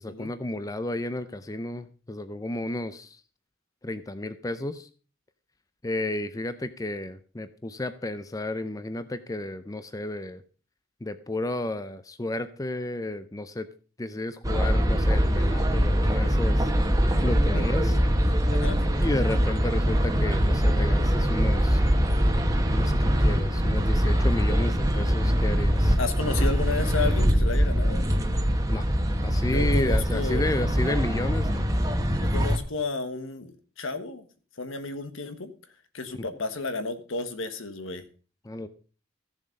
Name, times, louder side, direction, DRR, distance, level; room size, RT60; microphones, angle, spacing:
voice 1, 0.0-3.2 3.8-4.9 5.8-10.4 11.0-13.7 14.0-16.7 17.2-17.9 19.0-21.8 22.7-26.0 28.7-28.8 29.2-31.6 38.4-38.7, left 1 dB, 15° left, 11 dB, 0.6 m, -32 dB
sound 1, 14.4-32.6, equal, 15° right, 1.3 m, -23 dB
voice 2, 18.5-18.8 26.0-28.0 29.5-30.6 32.2-34.3 34.6-35.5 35.9-38.0, left 3 dB, 75° left, 10 dB, 1.4 m, -32 dB
14.5 x 7.2 x 5.2 m, 0.38 s
head